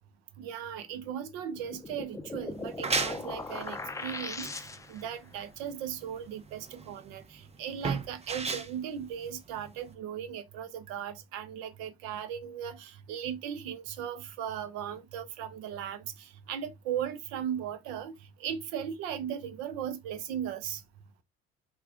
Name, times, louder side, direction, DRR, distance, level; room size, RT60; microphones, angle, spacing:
voice 1, 0.4-18.1 18.4-20.8, right 9 dB, 90° right, 0.6 m, -37 dB
sound 1, 1.5-5.1, left 3 dB, 10° left, 0.4 m, -39 dB
sound 2, 2.5-9.9, right 4 dB, 20° right, 0.7 m, -36 dB
4.2 x 2.3 x 2.4 m
supercardioid pair, 80°, 30 cm